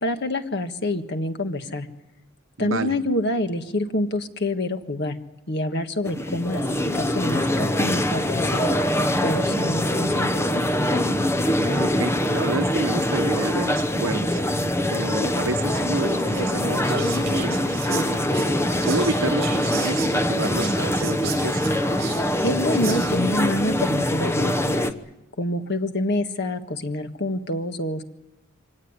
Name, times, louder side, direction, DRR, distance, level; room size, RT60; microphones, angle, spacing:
voice 1, 0.0-1.9 2.6-5.2 5.5-8.9 9.2-10.5 22.4-24.9 25.4-28.0, left 1 dB, 55° left, 7 dB, 1.6 m, -27 dB
voice 2, 2.6-3.0 11.5-14.4 14.9-18.3 18.8-21.7, right 2 dB, 75° right, 8 dB, 1.3 m, -29 dB
sound 1, 6.1-24.9, left 1 dB, 15° left, 1.0 m, -23 dB
Whispering, 15.8-23.3, right 8 dB, 55° right, 7.4 m, -37 dB
24.5 x 18.0 x 9.6 m, 0.93 s
head